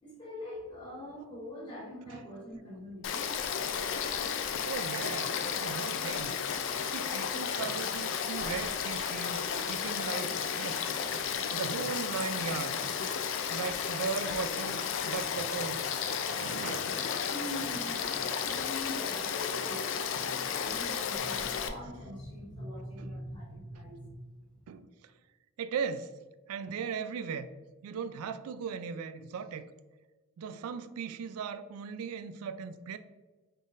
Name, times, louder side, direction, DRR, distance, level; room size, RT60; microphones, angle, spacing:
voice 1, 0.0-3.3 17.3-24.6, equal, 20° left, -8 dB, 1.3 m, -43 dB
Frog / Stream, 3.0-21.7, left 7 dB, 60° left, 0.4 m, -33 dB
voice 2, 4.6-6.4 6.9-11.0 11.4-13.1 13.5-16.9 18.4-18.5 19.3-19.4 23.0-23.1 24.7-24.9 25.6-26.1 26.5-27.5 27.8-29.6 30.4-33.0, right 6 dB, 80° right, 12 dB, 0.3 m, -38 dB
3.9 x 3.8 x 2.4 m, 1.2 s
head